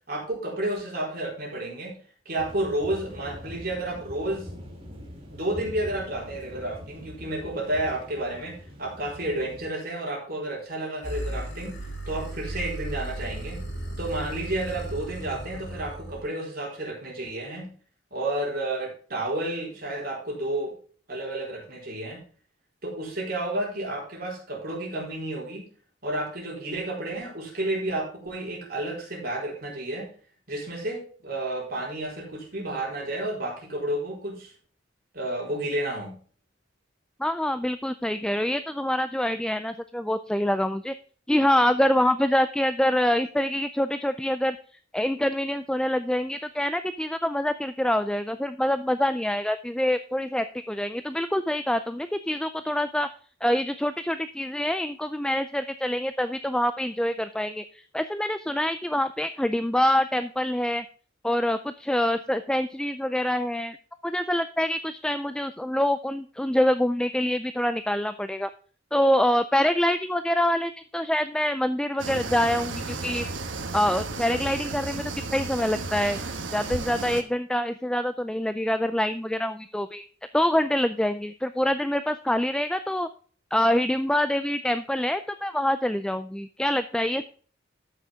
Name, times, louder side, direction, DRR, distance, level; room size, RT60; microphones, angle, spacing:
voice 1, 0.1-2.0 2.3-4.5 5.3-13.6 14.0-17.7 18.1-20.7 21.1-22.2 22.8-25.6 26.0-30.1 30.5-34.5 35.1-36.1, right 1 dB, 50° right, -3 dB, 4.3 m, -31 dB
sound 1, 2.4-9.7, equal, 30° right, 2.3 m, -43 dB
sound 2, 11.0-16.2, right 1 dB, 70° left, 3.8 m, -35 dB
voice 2, 37.2-40.9 41.3-44.6 44.9-53.1 53.4-60.8 61.2-63.8 64.0-68.5 68.9-73.3 73.7-76.2 76.5-80.0 80.3-83.1 83.5-87.2, left 1 dB, 5° left, 10 dB, 0.3 m, -25 dB
sound 3, 72.0-77.2, right 3 dB, 75° right, 1.2 m, -33 dB
13.0 x 6.5 x 3.6 m, 0.42 s
head